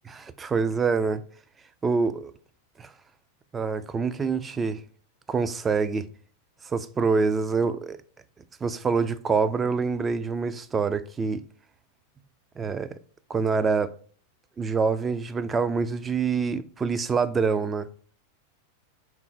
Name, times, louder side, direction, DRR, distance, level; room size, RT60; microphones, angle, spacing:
voice 1, 0.1-1.2 1.8-2.3 2.8-2.9 3.5-4.8 5.3-6.1 6.6-8.0 8.6-11.4 12.6-12.9 13.3-13.9 14.6-17.9, right 5 dB, 15° right, 0.3 m, -26 dB
4.6 x 3.7 x 3.1 m
figure-of-eight pair, 90°, 0 cm